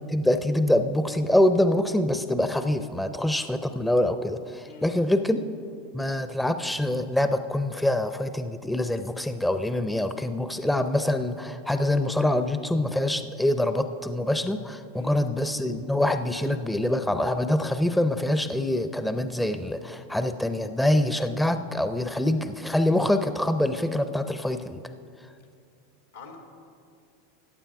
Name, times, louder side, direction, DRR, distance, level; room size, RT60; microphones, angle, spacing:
voice 1, 0.1-5.4 5.9-24.8, left 1 dB, 5° left, 9 dB, 0.5 m, -25 dB
voice 2, 4.6-4.9 14.9-15.2 26.1-26.4, left 5 dB, 90° left, 3 dB, 2.2 m, -45 dB
14.5 x 8.9 x 4.7 m, 2.4 s
hypercardioid pair, 100°, 0 cm